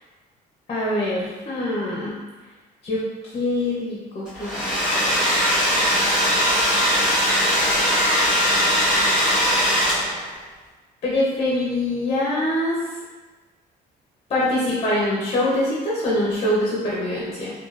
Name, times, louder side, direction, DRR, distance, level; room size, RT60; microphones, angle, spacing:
voice 1, 0.7-2.1 2.8-3.0 3.3-5.4 11.0-12.8 14.3-17.5, left 1 dB, 40° left, -6 dB, 0.9 m, -24 dB
Domestic sounds home sounds, 4.3-10.3, equal, 5° right, 1.4 m, -20 dB
4.8 x 2.3 x 2.5 m, 1.2 s
cardioid pair, 110°, 17 cm